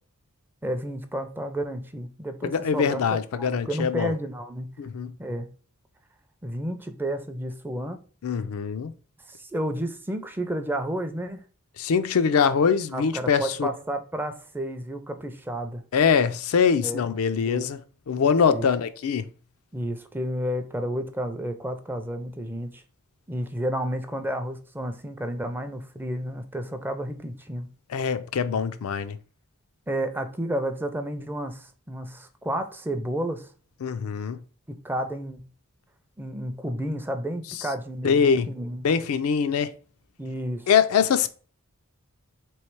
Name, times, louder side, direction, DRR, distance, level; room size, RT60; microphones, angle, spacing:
voice 1, 0.6-3.0 3.3-4.7 5.2-5.5 6.4-8.0 9.3-11.4 12.9-15.8 16.8-17.0 17.5-17.7 18.5-18.7 19.7-22.8 23.3-27.7 29.9-33.5 34.7-35.4 36.2-38.9 40.2-40.7, right 1 dB, 10° right, 0.4 m, -31 dB
voice 2, 2.4-4.1 4.8-5.1 8.2-8.9 11.8-13.7 15.9-17.8 18.1-19.3 27.9-29.2 33.8-34.4 38.0-38.5 38.8-39.7 40.7-41.3, left 6 dB, 75° left, 0.4 m, -23 dB
3.1 x 3.1 x 4.5 m
head